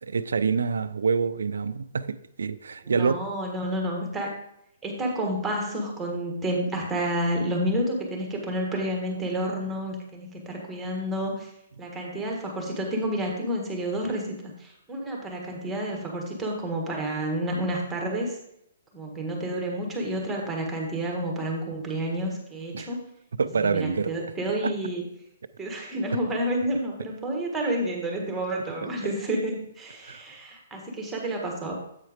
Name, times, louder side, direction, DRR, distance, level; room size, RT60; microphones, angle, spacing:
voice 1, 0.0-3.2 22.7-22.9 23.3-24.1 24.6-24.7 30.0-30.2, right 5 dB, 85° right, 13 dB, 0.4 m, -26 dB
voice 2, 2.9-4.3 4.8-11.5 11.8-14.3 14.6-18.4 18.9-23.0 23.6-25.0 25.6-31.7, right 1 dB, 10° right, 0 dB, 1.4 m, -30 dB
8.1 x 4.4 x 5.0 m, 0.78 s
hypercardioid pair, 155°, 0 cm